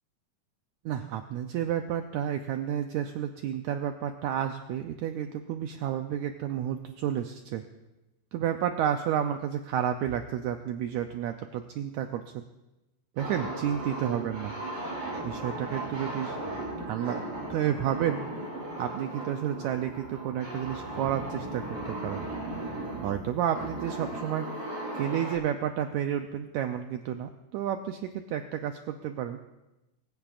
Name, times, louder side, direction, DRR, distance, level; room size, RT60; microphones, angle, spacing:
voice 1, 0.9-7.6 8.3-12.4 13.2-14.5 15.2-16.4 16.8-17.2 17.5-18.2 18.8-22.2 23.0-24.7 24.9-29.4, right 10 dB, 80° right, 6 dB, 1.7 m, -31 dB
sound 1, 13.2-25.4, right 2 dB, 60° right, 6.6 m, -37 dB
22.5 x 16.0 x 2.5 m, 0.99 s
omnidirectional pair, 3.9 m